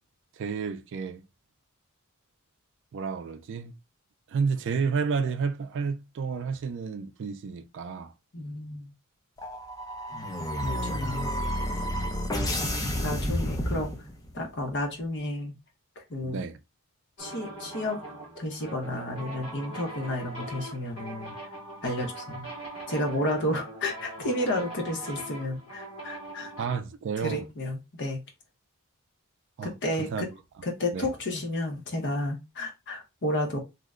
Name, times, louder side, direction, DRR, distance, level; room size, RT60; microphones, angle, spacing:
voice 1, 0.4-1.2 2.9-3.7 4.3-8.1 16.2-16.6 26.6-27.4 29.6-29.7 30.0-30.3 30.9-31.1, right 5 dB, 55° right, 0.4 m, -31 dB
voice 2, 8.3-8.9 10.1-11.3 13.0-13.9 14.3-15.5 16.1-16.4 17.2-18.0 18.4-21.3 21.8-22.5 22.9-26.5 27.2-28.2 29.6-30.3 30.6-33.6, left 1 dB, 55° left, 0.9 m, -31 dB
sound 1, 9.4-14.4, equal, 15° left, 0.5 m, -30 dB
sound 2, 17.2-26.8, right 1 dB, 70° left, 1.2 m, -41 dB
2.8 x 2.2 x 3.5 m
head